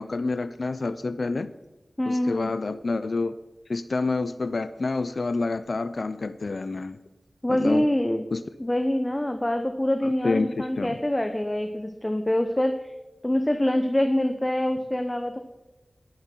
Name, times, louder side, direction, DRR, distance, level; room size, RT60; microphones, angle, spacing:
voice 1, 0.0-1.5 2.1-3.3 3.7-7.0 7.5-7.8 8.3-8.4 10.2-11.0, left 3 dB, 65° left, 12 dB, 0.6 m, -28 dB
voice 2, 2.0-2.5 7.4-8.2 8.6-12.9 13.2-15.4, left 1 dB, 20° left, 6 dB, 0.9 m, -25 dB
20.0 x 9.5 x 4.5 m, 1.0 s
wide cardioid pair, 85°, 0 cm